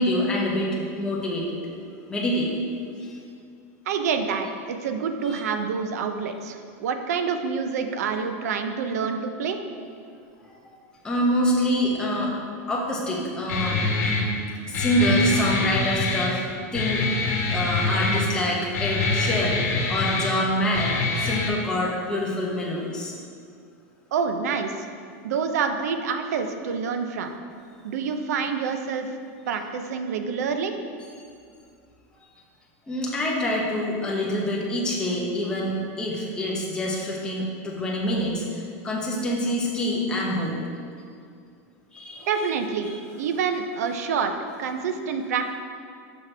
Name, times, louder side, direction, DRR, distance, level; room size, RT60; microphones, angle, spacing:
voice 1, 0.0-1.6 2.1-2.6 3.0-3.2 5.3-5.4 10.4-10.5 11.0-12.3 12.7-14.3 14.7-17.2 17.5-23.1 32.9-40.6 41.9-42.5 42.8-42.9, equal, 10° left, -4 dB, 0.9 m, -26 dB
voice 2, 3.9-9.6 24.1-24.9 25.2-27.4 27.8-29.1 29.5-30.7 42.3-44.3 44.6-45.5, right 6 dB, 90° right, 7 dB, 0.5 m, -27 dB
Guitar, 13.5-21.5, left 3 dB, 85° left, 1.0 m, -25 dB
6.0 x 5.9 x 3.3 m, 2.3 s
supercardioid pair, 160°, 8 cm